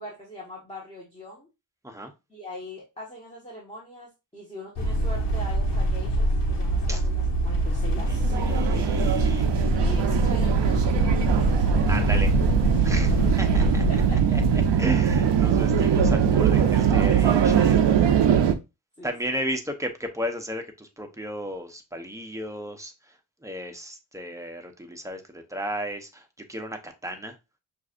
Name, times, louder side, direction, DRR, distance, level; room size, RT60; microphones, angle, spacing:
voice 1, 0.0-1.5 2.3-8.9 9.7-12.2 13.9-14.4 19.0-19.5, left 1 dB, 15° left, 1.4 m, -41 dB
sound 1, 4.8-14.2, right 1 dB, 80° left, 1.2 m, -25 dB
sound 2, 8.0-18.5, right 7 dB, 80° right, 0.7 m, -22 dB
voice 2, 8.1-9.5 11.9-12.3 12.8-13.8 14.3-17.8 19.0-23.1 23.4-27.4, equal, 5° right, 0.8 m, -34 dB
6.2 x 2.7 x 2.5 m
cardioid pair, 75°, 42 cm